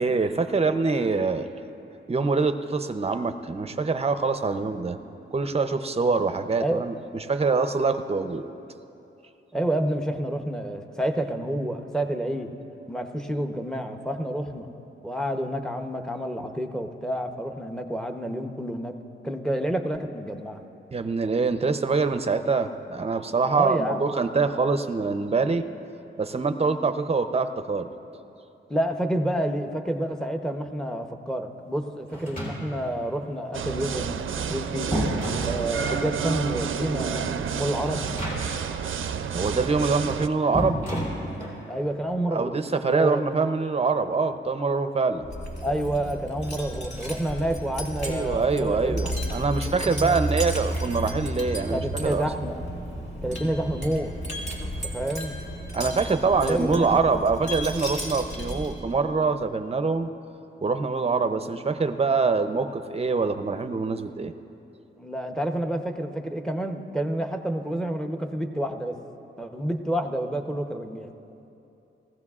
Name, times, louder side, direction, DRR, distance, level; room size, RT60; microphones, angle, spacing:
voice 1, 0.0-1.5 2.1-5.0 5.3-6.9 7.3-8.5 20.9-25.6 26.2-27.9 39.3-40.8 42.3-45.3 48.0-52.2 55.7-60.1 60.6-64.3, right 4 dB, 30° right, 9 dB, 0.6 m, -24 dB
voice 2, 9.5-12.5 12.9-14.7 15.0-19.0 19.2-20.6 23.5-24.0 28.7-34.9 35.4-38.1 41.7-42.6 42.9-43.2 45.6-50.2 51.7-52.6 53.2-54.2 54.6-55.4 56.4-57.0 65.0-69.0 69.4-71.2, right 1 dB, 5° left, 5 dB, 0.8 m, -29 dB
sound 1, 32.1-33.0 34.2-36.1 37.9-38.8 39.0-39.1 40.5-41.7, equal, 40° left, 3.3 m, -31 dB
sound 2, 33.5-40.3, right 7 dB, 75° right, 0.5 m, -30 dB
Wind chime, 45.2-58.9, right 1 dB, 60° left, 2.1 m, -33 dB
19.5 x 15.0 x 2.4 m, 2.8 s
cardioid pair, 85°, 21 cm